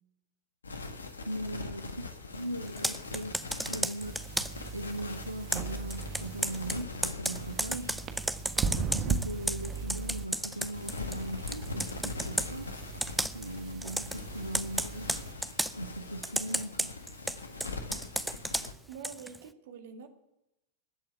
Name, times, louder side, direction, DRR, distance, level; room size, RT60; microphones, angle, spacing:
sound 1, 0.6-18.7, left 3 dB, 75° left, 1.5 m, -43 dB
voice 1, 1.3-4.4 4.7-8.0 8.7-12.8 13.3-15.1 15.7-16.9, right 1 dB, 85° right, 7 dB, 0.8 m, -39 dB
Computer keyboard, 2.7-4.7 5.5-11.2 11.5-12.5 13.0-13.5 13.8-14.2 14.5-15.8 16.2-19.4, right 1 dB, 5° right, 0.5 m, -33 dB
sound 2, 4.0-6.8 7.3-10.2 10.7-15.3, right 5 dB, 30° right, 1.4 m, -38 dB
voice 2, 18.9-20.1, right 6 dB, 55° right, 7 dB, 1.8 m, -46 dB
19.5 x 7.7 x 8.2 m, 0.89 s
figure-of-eight pair, 90°, 0 cm